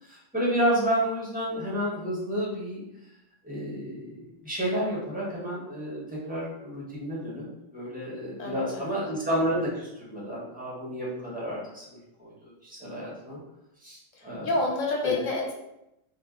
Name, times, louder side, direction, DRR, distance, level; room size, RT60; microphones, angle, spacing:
voice 1, 0.0-2.8 3.4-7.5 7.7-13.4 13.8-14.5 15.0-15.1, equal, 10° right, -6 dB, 0.8 m, -31 dB
voice 2, 8.4-9.0 14.2-15.5, left 2 dB, 70° left, -1 dB, 1.2 m, -29 dB
2.7 x 2.4 x 3.6 m, 0.85 s
omnidirectional pair, 1.4 m